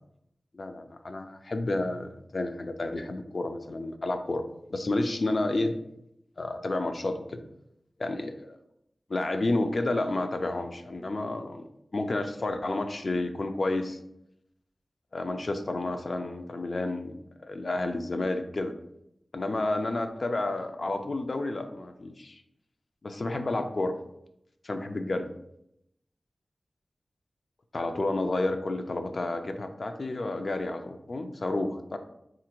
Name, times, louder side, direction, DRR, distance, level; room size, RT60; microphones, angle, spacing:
voice 1, 0.5-4.4 4.7-5.8 6.4-7.4 8.0-8.6 9.1-14.0 15.1-17.2 17.5-18.7 19.3-22.4 23.0-23.9 24.6-25.3 27.7-32.0, left 2 dB, 60° left, 7 dB, 0.3 m, -30 dB
3.6 x 2.4 x 2.9 m, 0.80 s
cardioid pair, 50°, 0 cm